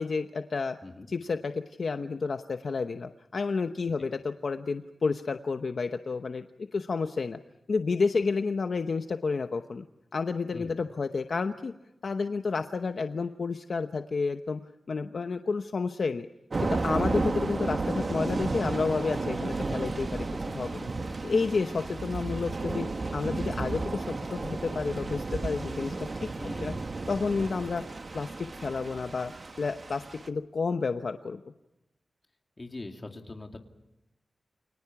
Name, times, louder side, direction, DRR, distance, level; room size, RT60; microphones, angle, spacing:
voice 1, 0.0-0.8 1.1-7.4 7.7-9.8 10.1-11.7 12.0-14.6 14.9-16.3 16.6-20.9 21.2-26.1 26.6-26.7 27.1-27.8 28.1-31.4, left 4 dB, 55° left, 7 dB, 0.9 m, -30 dB
Thunder / Rain, 16.5-30.3, right 3 dB, 35° right, 1.2 m, -33 dB
voice 2, 26.4-26.8 32.6-33.6, left 2 dB, 30° left, 3 dB, 2.5 m, -42 dB
29.5 x 23.5 x 5.9 m, 0.93 s
wide cardioid pair, 145°, 0 cm